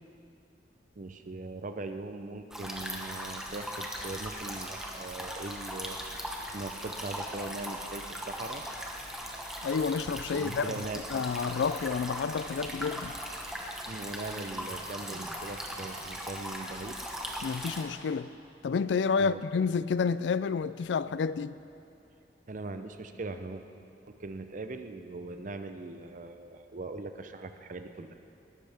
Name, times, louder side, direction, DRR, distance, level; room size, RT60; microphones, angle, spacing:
voice 1, 1.0-6.0 6.5-8.7 10.3-11.0 13.9-17.0 19.2-19.4 22.5-23.6 24.1-28.2, right 2 dB, 45° right, 0.6 m, -40 dB
sound 1, 2.5-17.8, equal, 5° right, 1.2 m, -39 dB
voice 2, 9.6-10.7 11.1-13.1 17.4-18.3 18.6-21.6, left 5 dB, 80° left, 0.4 m, -29 dB
19.5 x 12.0 x 3.5 m
head